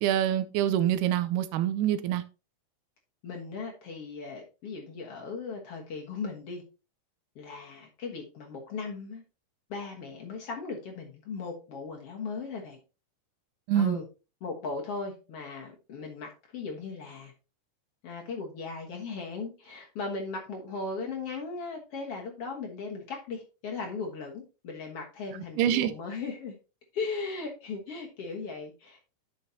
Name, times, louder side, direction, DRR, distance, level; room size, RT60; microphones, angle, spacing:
voice 1, 0.0-2.2 13.7-14.0 25.6-25.9, right 11 dB, 80° right, 11 dB, 2.1 m, -25 dB
voice 2, 3.2-6.6 7.4-9.2 9.7-12.8 13.7-14.0 14.4-17.3 18.0-26.6 26.9-29.0, left 4 dB, 55° left, 1 dB, 2.0 m, -37 dB
10.0 x 6.5 x 2.8 m, 0.31 s
omnidirectional pair, 3.7 m